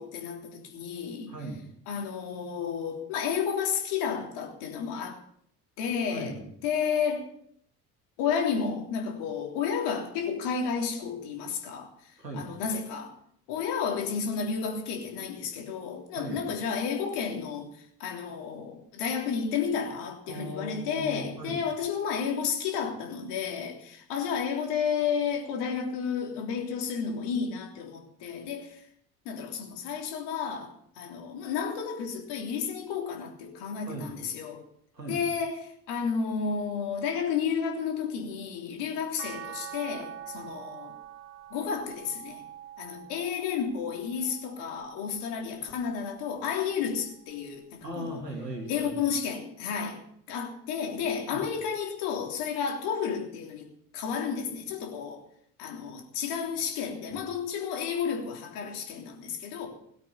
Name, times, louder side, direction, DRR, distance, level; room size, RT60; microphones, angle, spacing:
voice 1, 0.0-1.3 1.9-5.2 5.8-6.4 6.6-7.3 8.2-13.1 13.5-28.8 29.3-34.6 35.1-40.9 41.5-42.4 42.8-48.2 48.7-50.0 50.3-53.7 53.9-55.2 55.6-59.7, left 6 dB, 55° left, 3.4 m, -32 dB
voice 2, 1.3-1.7 6.1-6.4 12.2-12.5 16.1-16.4 20.3-21.6 33.9-34.2 34.9-35.2 47.8-49.0 51.3-51.4 57.1-57.2, right 1 dB, 85° right, 2.9 m, -38 dB
sound 1, 39.2-45.5 46.1-47.4 48.8-48.9, right 10 dB, 60° right, 1.2 m, -46 dB
18.0 x 8.4 x 7.0 m
figure-of-eight pair, 60°, 48 cm